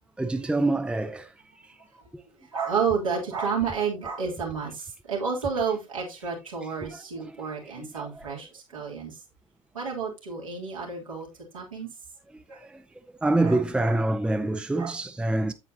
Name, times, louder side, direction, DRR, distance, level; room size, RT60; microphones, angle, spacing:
voice 1, 0.2-1.3 1.6-1.8 6.8-8.3 12.3-12.8 13.2-15.5, right 2 dB, 5° right, 0.6 m, -27 dB
voice 2, 2.4-9.2 9.7-11.3 11.5-11.9 12.5-12.6 13.4-13.6 13.8-13.9 14.8-14.9, right 6 dB, 80° right, 3.1 m, -30 dB
8.9 x 7.7 x 2.8 m
figure-of-eight pair, 60°, 17 cm